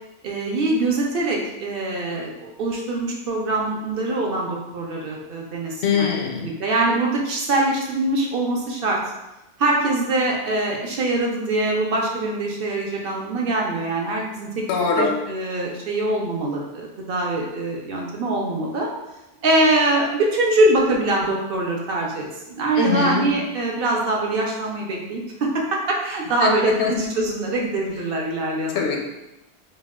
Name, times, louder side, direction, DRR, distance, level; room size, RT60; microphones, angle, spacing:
voice 1, 0.2-6.1 6.6-9.0 9.6-14.6 15.0-18.9 19.4-28.8, right 2 dB, 65° right, -1 dB, 0.7 m, -23 dB
voice 2, 5.8-6.5 14.7-15.2 22.8-23.2 26.4-26.9 28.7-29.0, left 5 dB, 85° left, 1 dB, 0.8 m, -22 dB
2.3 x 2.1 x 3.4 m, 0.95 s
omnidirectional pair, 1.1 m